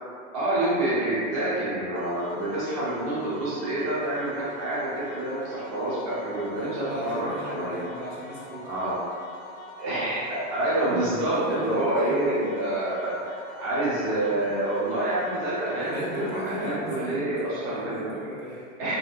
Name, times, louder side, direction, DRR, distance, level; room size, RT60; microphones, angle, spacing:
voice 1, 0.3-7.7 8.6-8.9 9.8-18.1 18.8-19.0, right 1 dB, 30° right, -10 dB, 0.4 m, -27 dB
sound 1, 1.9-16.7, left 2 dB, 85° left, 0.5 m, -45 dB
voice 2, 6.5-8.7 11.3-12.2 15.8-17.2 17.5-19.0, equal, 70° right, -6 dB, 0.9 m, -35 dB
2.7 x 2.1 x 2.2 m, 2.3 s
supercardioid pair, 165°, 39 cm